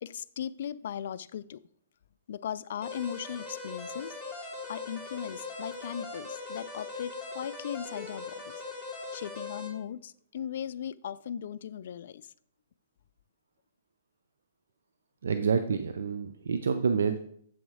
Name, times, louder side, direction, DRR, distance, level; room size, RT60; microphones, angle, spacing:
voice 1, 0.0-1.6 2.3-4.2 4.7-8.6 9.1-12.3, left 9 dB, 65° left, 0.3 m, -38 dB
sound 1, 2.8-9.7, left 3 dB, 10° right, 2.9 m, -40 dB
voice 2, 15.2-17.2, right 5 dB, 85° right, 0.4 m, -28 dB
7.7 x 3.9 x 4.8 m
hypercardioid pair, 140°, 0 cm